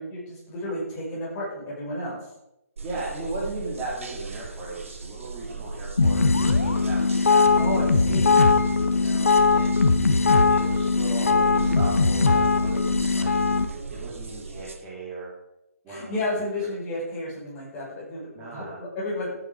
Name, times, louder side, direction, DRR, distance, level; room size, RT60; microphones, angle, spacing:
voice 1, 0.0-2.2 7.5-8.4 15.9-18.7 18.9-19.4, left 1 dB, 20° left, -5 dB, 5.7 m, -31 dB
voice 2, 2.8-7.6 8.9-13.3 13.9-15.3 15.8-16.7 18.3-18.8, right 2 dB, 15° right, -6 dB, 3.0 m, -37 dB
sound 1, 2.8-14.8, right 4 dB, 60° right, 2.0 m, -38 dB
sound 2, 6.0-13.7, left 4 dB, 60° left, 1.4 m, -20 dB
13.5 x 9.5 x 4.9 m, 0.86 s
figure-of-eight pair, 140°, 8 cm